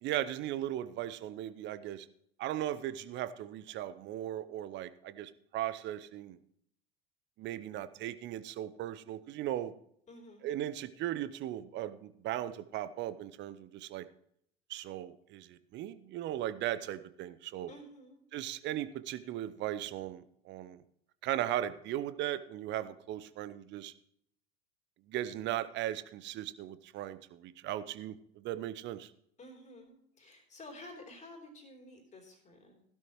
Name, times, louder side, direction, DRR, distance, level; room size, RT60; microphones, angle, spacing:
voice 1, 0.0-2.1 2.4-6.4 7.4-9.7 10.4-14.1 14.7-17.7 18.3-20.8 21.2-23.9 25.1-29.1, right 12 dB, 35° right, 14 dB, 0.8 m, -37 dB
voice 2, 10.1-10.5 17.7-18.2 29.4-32.8, left 1 dB, 20° left, 1 dB, 3.4 m, -51 dB
16.0 x 12.0 x 3.1 m, 0.69 s
figure-of-eight pair, 80°, 31 cm